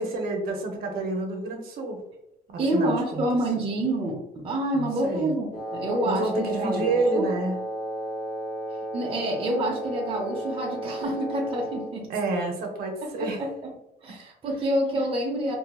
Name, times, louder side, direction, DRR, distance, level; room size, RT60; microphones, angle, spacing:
voice 1, 0.0-2.0 2.5-3.2 4.7-5.3 6.0-7.5 12.1-13.4, right 2 dB, 65° right, 2 dB, 0.8 m, -29 dB
voice 2, 2.6-7.3 8.9-12.1 13.0-13.7 14.0-15.5, right 1 dB, 30° right, 0 dB, 0.6 m, -28 dB
Wind instrument woodwind instrument, 5.5-12.0, right 1 dB, 65° left, 0.7 m, -33 dB
2.8 x 2.6 x 2.3 m, 0.87 s
cardioid pair, 110°, 17 cm